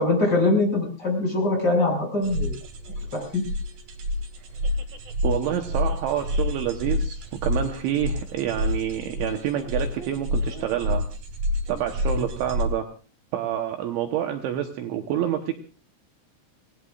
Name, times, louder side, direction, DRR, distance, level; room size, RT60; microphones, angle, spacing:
voice 1, 0.0-2.6 3.1-3.4, left 2 dB, 20° left, 0 dB, 6.4 m, -23 dB
sound 1, 2.2-12.6, left 1 dB, 50° right, 3.3 m, -28 dB
voice 2, 5.2-11.1 11.7-12.8 13.3-15.5, right 10 dB, 75° right, 4 dB, 3.3 m, -27 dB
28.0 x 19.0 x 2.5 m, 0.37 s
omnidirectional pair, 5.9 m